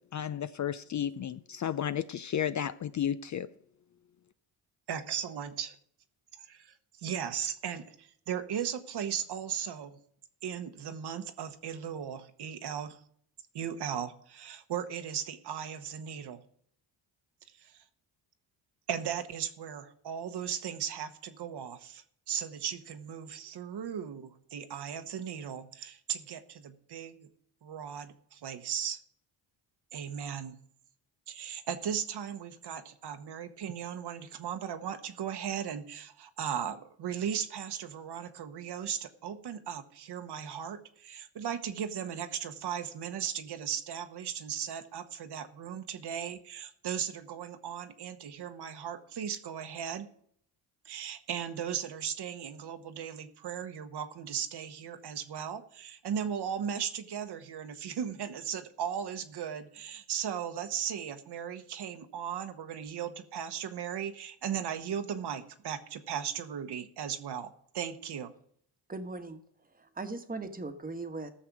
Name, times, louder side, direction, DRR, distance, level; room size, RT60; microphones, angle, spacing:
voice 1, 0.1-3.5, left 9 dB, 40° left, 0.5 m, -33 dB
voice 2, 4.9-5.8 6.5-10.0 10.4-13.0 13.5-16.4 17.6-17.8 18.9-27.2 27.6-29.0 29.9-30.6 31.3-50.1 50.8-68.3, right 8 dB, 55° right, 1.1 m, -37 dB
voice 3, 68.9-69.4 69.7-71.3, right 3 dB, 20° right, 1.3 m, -39 dB
14.0 x 6.6 x 6.1 m
cardioid pair, 85°, 47 cm